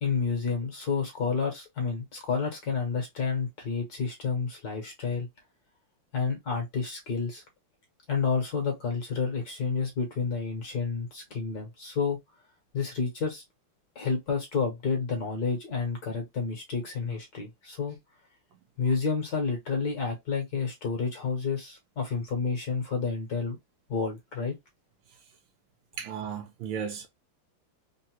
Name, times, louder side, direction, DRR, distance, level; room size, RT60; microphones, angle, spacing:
voice 1, 0.0-5.3 6.1-7.4 8.1-12.2 12.7-13.4 13.9-18.0 18.8-23.6 23.9-24.5, left 5 dB, 60° left, 1.2 m, -30 dB
voice 2, 26.0-27.1, right 7 dB, 75° right, 1.3 m, -35 dB
3.7 x 2.0 x 2.8 m
omnidirectional pair, 2.4 m